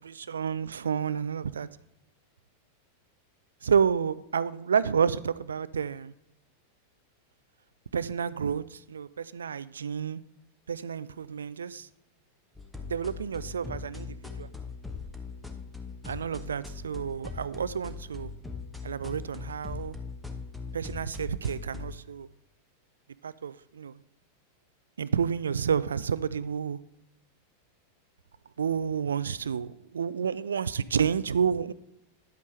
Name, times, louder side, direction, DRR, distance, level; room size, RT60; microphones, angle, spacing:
voice 1, 0.1-1.7 3.6-6.1 7.9-10.2 10.7-11.9 12.9-14.5 16.0-18.3 18.8-20.0 20.7-22.3 23.2-24.0 25.0-26.8 28.6-31.7, right 7 dB, 70° right, 0.3 m, -30 dB
sound 1, 12.6-22.0, left 4 dB, 5° left, 1.0 m, -40 dB
10.5 x 8.3 x 3.2 m
figure-of-eight pair, 90°, 0 cm